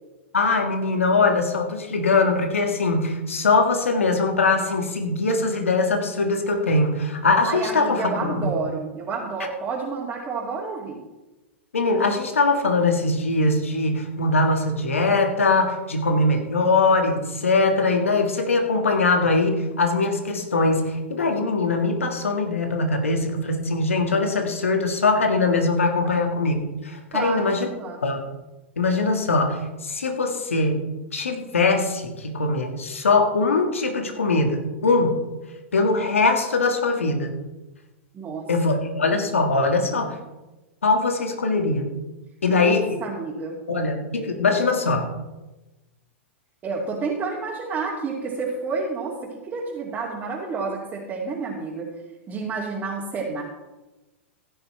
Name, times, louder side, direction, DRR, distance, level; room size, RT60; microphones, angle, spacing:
voice 1, 0.3-8.5 11.7-27.7 28.0-28.2 28.8-30.8 31.1-35.2 35.7-37.3 38.5-40.2 40.8-41.9 42.4-42.8 43.7-45.1, left 3 dB, 85° left, 4 dB, 1.8 m, -22 dB
voice 2, 7.4-11.0 27.1-28.0 38.1-38.5 42.5-43.6 46.6-51.9 52.3-53.4, right 4 dB, 25° right, -5 dB, 2.4 m, -30 dB
15.5 x 10.5 x 3.3 m, 1.1 s
hypercardioid pair, 105°, 7 cm